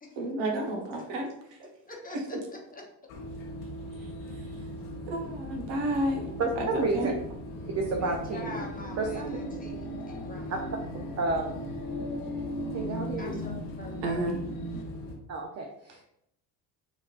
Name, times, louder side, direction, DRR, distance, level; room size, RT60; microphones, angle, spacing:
voice 1, 0.2-1.7 2.1-2.2 4.0-4.5 5.1-7.1 14.0-14.4, right 1 dB, 70° right, 1 dB, 1.0 m, -32 dB
voice 2, 1.8-2.8 8.0-10.6 13.2-14.4, left 2 dB, 20° left, -1 dB, 0.9 m, -44 dB
sound 1, 3.1-15.2, left 1 dB, 85° left, 0.8 m, -40 dB
voice 3, 6.4-7.1 7.7-8.5 9.0-9.4 11.2-11.5 12.7-13.4 15.3-16.0, right 3 dB, 35° right, 1 dB, 0.6 m, -30 dB
sound 2, 7.5-14.8, equal, 50° left, 0.8 m, -38 dB
4.0 x 2.5 x 2.4 m, 0.78 s
hypercardioid pair, 65°, 44 cm